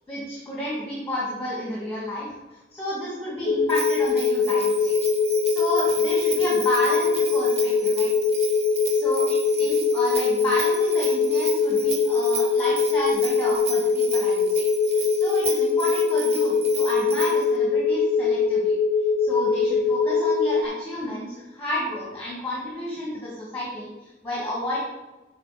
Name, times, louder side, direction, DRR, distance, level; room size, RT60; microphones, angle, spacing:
voice 1, 0.1-2.3 2.7-4.9 5.5-8.1 8.9-9.2 9.6-14.6 14.9-18.7 19.2-24.8, left 1 dB, 10° left, -6 dB, 1.5 m, -31 dB
sound 1, 3.5-20.6, left 4 dB, 40° left, 0.4 m, -22 dB
Bell, 3.7-17.5, right 6 dB, 35° right, 0.5 m, -35 dB
6.4 x 4.1 x 5.7 m, 1.1 s
head